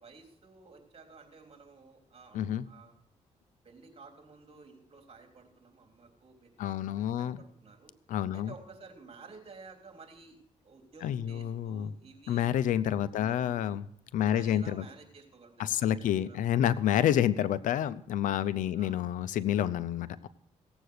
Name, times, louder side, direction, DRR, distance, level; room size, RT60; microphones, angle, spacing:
voice 1, 0.0-2.9 3.6-6.5 6.8-7.9 8.3-12.5 12.8-13.6 14.3-16.5 18.7-19.0, right 4 dB, 50° right, 4 dB, 3.7 m, -53 dB
voice 2, 2.3-2.7 6.6-7.4 8.1-8.5 11.0-11.9 12.3-13.9 14.1-14.9 15.6-20.3, left 10 dB, 85° left, 17 dB, 0.6 m, -29 dB
17.0 x 8.0 x 6.5 m, 0.68 s
cardioid pair, 80°, 13 cm